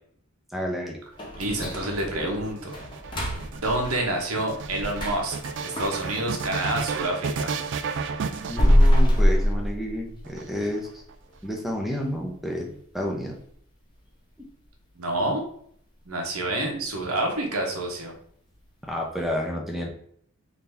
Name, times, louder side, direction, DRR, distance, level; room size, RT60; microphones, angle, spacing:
voice 1, 0.5-1.0 8.5-10.9 11.4-12.7 12.9-13.3 14.4-14.5 18.8-19.9, equal, ahead, -1 dB, 0.7 m, -30 dB
sound 1, 1.2-7.1 7.5-10.3 10.7-10.8 11.3-11.4 11.9-12.2 12.6-12.7 13.2-13.3, equal, 20° left, 0.9 m, -25 dB
voice 2, 1.4-2.8 3.3-5.4 5.6-7.5 15.0-15.4 16.1-18.1, right 1 dB, 75° right, 1 dB, 1.0 m, -28 dB
sound 2, 1.5-9.4 10.2-11.1, right 5 dB, 55° right, 0.3 m, -33 dB
3.9 x 2.7 x 3.3 m, 0.64 s
head